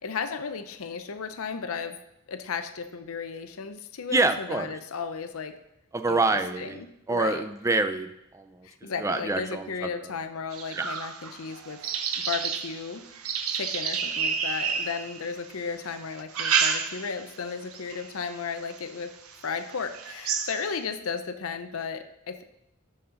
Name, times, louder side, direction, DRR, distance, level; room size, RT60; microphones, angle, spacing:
voice 1, 0.0-2.0 2.3-5.5 6.1-7.4 8.6-11.8 12.2-13.0 13.5-19.1 19.4-22.4, left 5 dB, 70° left, 8 dB, 0.6 m, -34 dB
voice 2, 4.1-4.7 5.9-6.8 7.1-8.4 9.0-9.6, right 3 dB, 15° right, 9 dB, 0.4 m, -26 dB
sound 1, 10.5-15.5 16.1-17.3 17.7-18.1 18.7-18.8 19.3-19.4 19.7-20.8, right 6 dB, 75° right, 0.7 m, -30 dB
12.5 x 4.3 x 3.8 m, 0.83 s
head